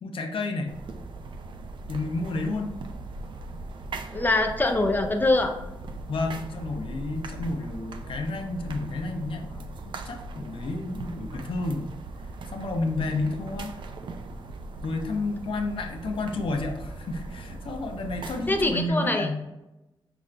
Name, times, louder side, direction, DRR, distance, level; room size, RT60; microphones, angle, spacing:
voice 1, 0.0-0.7 1.9-2.7 6.1-11.9 12.5-13.7 14.8-19.4, left 2 dB, 80° left, 4 dB, 0.6 m, -31 dB
sound 1, 0.7-18.9, right 2 dB, 65° right, 0.4 m, -39 dB
voice 2, 4.1-5.6 18.5-19.3, left 2 dB, 20° left, 5 dB, 0.5 m, -23 dB
5.9 x 2.5 x 3.2 m, 0.97 s
wide cardioid pair, 125°, 9 cm